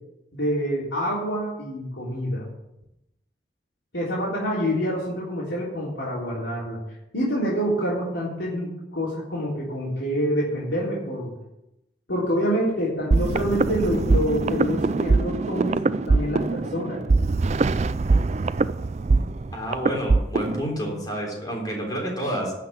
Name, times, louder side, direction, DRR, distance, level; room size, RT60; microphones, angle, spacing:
voice 1, 0.3-2.5 3.9-6.8 7.1-11.3 12.1-17.0, equal, 85° left, -7 dB, 3.6 m, -27 dB
sound 1, 13.1-20.7, right 3 dB, 35° right, 0.4 m, -22 dB
voice 2, 19.5-22.5, equal, 20° left, -1 dB, 3.6 m, -29 dB
12.0 x 5.8 x 8.7 m, 0.89 s
head